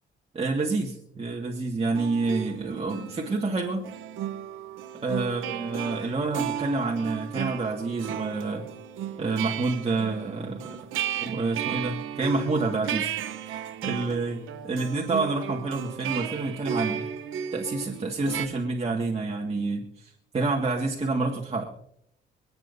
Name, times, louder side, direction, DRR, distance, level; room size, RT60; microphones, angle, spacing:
voice 1, 0.3-3.9 5.0-8.7 9.2-10.8 11.2-17.1 17.5-21.6, right 3 dB, 30° right, -1 dB, 2.0 m, -28 dB
sound 1, 1.9-18.5, right 9 dB, 85° right, 1.0 m, -34 dB
27.5 x 9.2 x 2.8 m, 0.72 s
cardioid pair, 90°, 20 cm